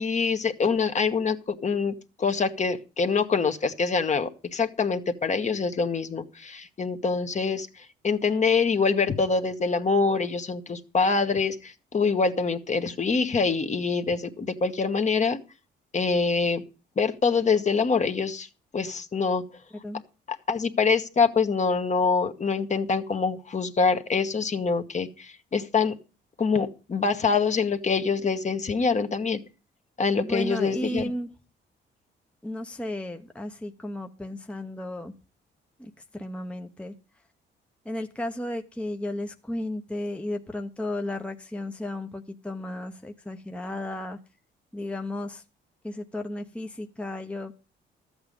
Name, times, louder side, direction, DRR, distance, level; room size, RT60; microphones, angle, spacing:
voice 1, 0.0-7.7 8.0-15.4 15.9-16.6 17.0-18.5 18.7-19.4 20.5-25.9 26.4-29.4 30.0-31.1, left 4 dB, 35° left, 7 dB, 1.2 m, -25 dB
voice 2, 30.2-31.3 32.4-35.1 35.8-36.9 37.8-44.2 44.7-45.4 45.8-47.5, left 1 dB, 5° left, 5 dB, 0.8 m, -34 dB
13.0 x 8.0 x 5.2 m, 0.34 s
cardioid pair, 90°, 20 cm